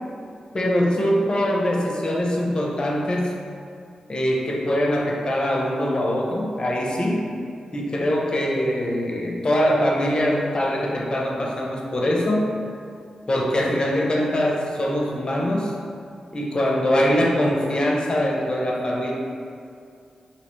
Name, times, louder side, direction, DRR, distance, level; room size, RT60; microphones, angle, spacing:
voice 1, 0.5-3.3 4.1-7.3 7.7-12.4 13.3-15.7 16.3-19.1, equal, 40° left, -1 dB, 0.5 m, -23 dB
2.7 x 2.0 x 2.9 m, 2.4 s
supercardioid pair, 45°, 2 cm